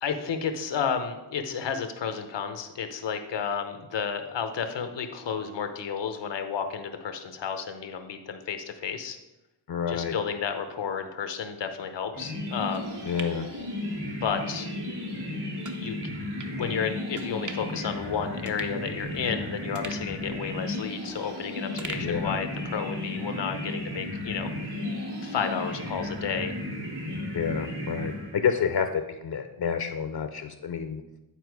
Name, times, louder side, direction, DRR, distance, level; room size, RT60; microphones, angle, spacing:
voice 1, 0.0-9.2 9.9-13.0 14.2-14.7 15.8-24.8 25.2-26.6, left 6 dB, 85° left, 7 dB, 0.9 m, -32 dB
voice 2, 9.7-10.1 13.1-13.5 22.0-22.4 27.3-31.0, left 7 dB, 60° left, 8 dB, 0.7 m, -29 dB
sound 1, 12.1-28.7, left 1 dB, 70° right, 3.0 m, -34 dB
sound 2, 12.7-14.3 14.7-14.8 15.6-15.8 16.4-16.6 17.1-17.8 18.1-18.2 18.5-19.3 19.7-21.3 21.8-22.9 23.3-23.4, right 4 dB, 45° right, 0.9 m, -43 dB
10.0 x 4.4 x 4.7 m, 0.97 s
cardioid pair, 70°, 42 cm